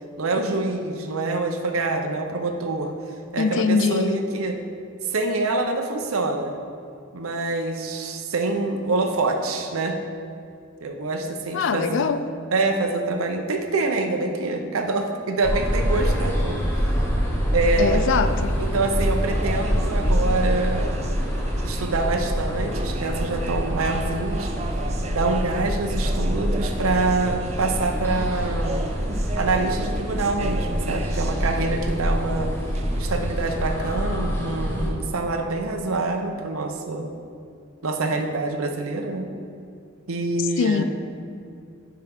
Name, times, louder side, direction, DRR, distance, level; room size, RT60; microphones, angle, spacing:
voice 1, 0.2-2.9 3.3-4.6 5.1-6.5 7.1-10.0 10.8-12.1 12.5-16.9 17.5-18.0 18.6-21.0 21.6-24.5 25.1-28.7 29.4-32.5 33.0-37.1 37.8-39.3 40.1-40.8, right 3 dB, 85° right, 4 dB, 0.8 m, -25 dB
voice 2, 3.4-4.2 11.5-12.2 17.8-18.6 40.6-40.8, left 5 dB, 60° left, 11 dB, 0.3 m, -22 dB
sound 1, 15.4-34.9, equal, 10° left, 1.0 m, -25 dB
sound 2, 17.9-33.6, right 3 dB, 30° right, 0.3 m, -37 dB
10.5 x 4.7 x 3.5 m, 2.4 s
head